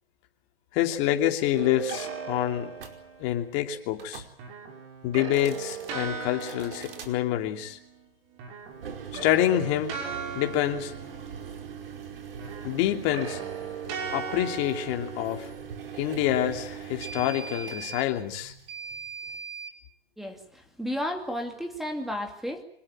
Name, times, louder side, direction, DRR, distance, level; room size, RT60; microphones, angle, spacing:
voice 1, 0.7-2.7 3.2-4.2 5.0-7.8 9.1-9.9 10.3-10.9 12.6-13.4 14.1-15.5 16.0-18.5, left 12 dB, 30° left, 4 dB, 2.9 m, -27 dB
sound 1, 1.5-3.4 4.4-8.1 8.3-12.0 12.4-15.8, right 6 dB, 30° right, 5.8 m, -39 dB
sound 2, 2.8-3.0 3.9-4.3 5.2-5.9 6.4-7.1 8.7-19.7, right 6 dB, 70° right, 5.1 m, -41 dB
voice 2, 20.2-22.6, equal, ahead, 4 dB, 2.3 m, -33 dB
25.5 x 20.5 x 8.9 m, 0.65 s
hypercardioid pair, 150°, 30 cm